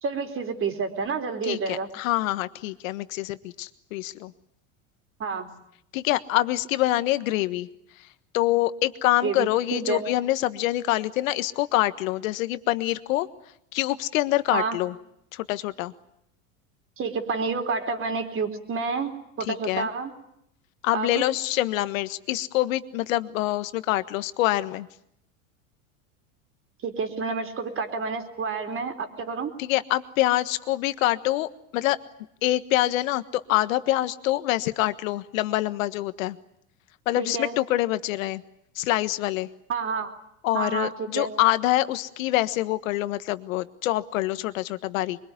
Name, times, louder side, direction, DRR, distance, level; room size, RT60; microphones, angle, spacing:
voice 1, 0.0-1.9 5.2-5.5 9.2-10.0 14.5-14.8 17.0-20.1 20.9-21.2 26.8-29.5 37.2-37.6 39.7-40.1 40.5-41.3, right 5 dB, 30° right, 7 dB, 3.9 m, -29 dB
voice 2, 1.4-4.3 5.9-7.7 8.3-13.3 13.7-14.9 15.3-15.9 19.5-19.9 20.8-24.9 29.6-32.0 32.4-36.4 37.1-38.4 38.7-39.5 40.4-45.2, left 16 dB, 80° left, 13 dB, 1.5 m, -25 dB
23.5 x 23.0 x 9.8 m, 0.77 s
supercardioid pair, 120°, 40 cm